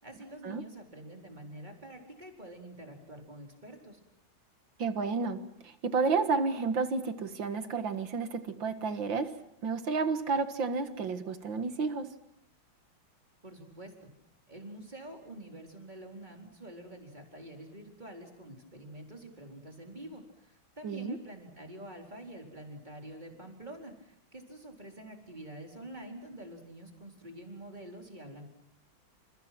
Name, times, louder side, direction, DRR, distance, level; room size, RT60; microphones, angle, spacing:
voice 1, 0.0-4.0 13.4-14.1 14.5-28.5, right 1 dB, 20° right, 2 dB, 4.5 m, -47 dB
voice 2, 4.8-9.4 9.6-12.1 20.8-21.2, right 4 dB, 65° right, 10 dB, 2.3 m, -31 dB
29.5 x 29.0 x 6.1 m, 0.73 s
omnidirectional pair, 2.3 m